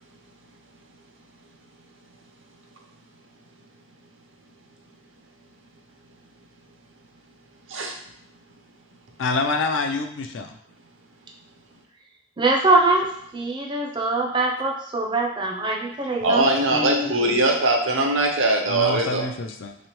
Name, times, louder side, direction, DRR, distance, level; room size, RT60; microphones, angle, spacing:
voice 1, 9.2-10.6 18.7-19.8, left 3 dB, 70° left, 6 dB, 0.5 m, -26 dB
voice 2, 12.4-17.4, right 2 dB, 25° right, 1 dB, 0.5 m, -23 dB
voice 3, 16.2-19.2, right 2 dB, 75° right, 2 dB, 0.7 m, -21 dB
3.5 x 3.2 x 3.0 m, 0.70 s
head